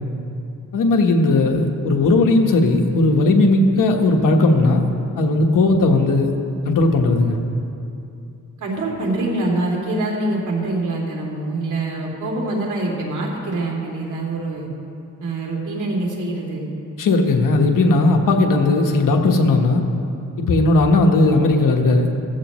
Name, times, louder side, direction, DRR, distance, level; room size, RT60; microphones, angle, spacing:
voice 1, 0.7-4.9 5.2-6.3 6.6-7.4 17.0-19.8 20.4-22.1, left 2 dB, 80° left, 2 dB, 1.3 m, -16 dB
voice 2, 8.6-14.7 15.2-16.7, right 2 dB, 70° right, -3 dB, 3.0 m, -25 dB
15.5 x 14.5 x 3.1 m, 2.6 s
cardioid pair, 95°, 32 cm